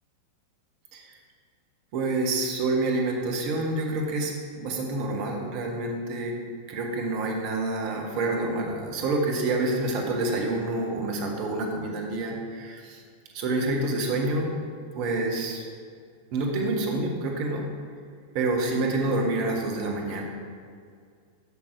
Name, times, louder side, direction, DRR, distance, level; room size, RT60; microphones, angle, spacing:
voice 1, 1.9-6.4 6.7-13.0 13.3-14.7 14.9-15.6 16.3-17.7 18.3-20.2, right 2 dB, 45° right, 1 dB, 1.4 m, -27 dB
8.5 x 6.1 x 4.7 m, 2.1 s
figure-of-eight pair, 90°, 0 cm